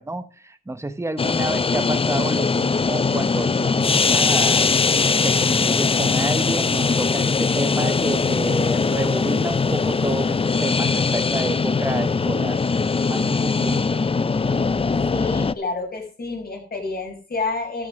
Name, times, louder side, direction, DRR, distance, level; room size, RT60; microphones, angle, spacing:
voice 1, 0.0-4.7 5.2-12.6 13.1-14.0, right 2 dB, 15° right, 11 dB, 1.2 m, -29 dB
sound 1, 1.2-15.5, left 4 dB, 30° left, 0.5 m, -21 dB
voice 2, 15.1-17.9, left 3 dB, 55° left, 0 dB, 6.1 m, -29 dB
13.5 x 6.5 x 6.3 m, 0.37 s
cardioid pair, 80°, 18 cm